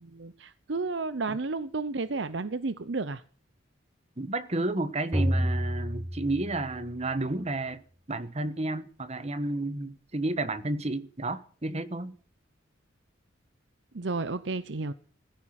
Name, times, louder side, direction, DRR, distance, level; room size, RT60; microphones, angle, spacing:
voice 1, 0.1-3.2 13.9-14.9, right 3 dB, 60° right, 0.7 m, -32 dB
voice 2, 4.2-12.2, right 2 dB, 35° right, 1.2 m, -31 dB
sound 1, 5.1-7.1, equal, 20° right, 5.7 m, -29 dB
16.0 x 14.0 x 5.9 m
head